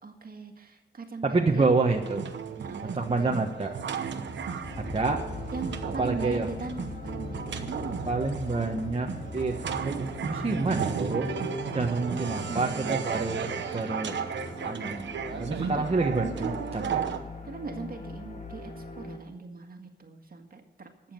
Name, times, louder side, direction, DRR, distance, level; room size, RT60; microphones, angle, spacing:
voice 1, 0.0-1.8 2.6-3.5 5.5-8.2 12.1-13.0 15.3-15.8 17.4-21.1, right 4 dB, 50° right, 4 dB, 1.8 m, -40 dB
voice 2, 1.2-2.3 2.9-3.7 4.8-5.2 6.0-6.5 8.1-9.6 9.8-11.3 11.7-14.2 14.6-15.1 15.4-17.0, right 3 dB, 30° right, 1 dB, 1.2 m, -28 dB
sound 1, 1.9-17.2, right 6 dB, 85° right, 1.0 m, -34 dB
sound 2, 3.9-9.8, left 1 dB, 70° left, 4.4 m, -48 dB
sound 3, 4.6-19.2, left 3 dB, 45° left, 1.9 m, -41 dB
12.0 x 7.4 x 9.2 m, 1.2 s
cardioid pair, 70°, 19 cm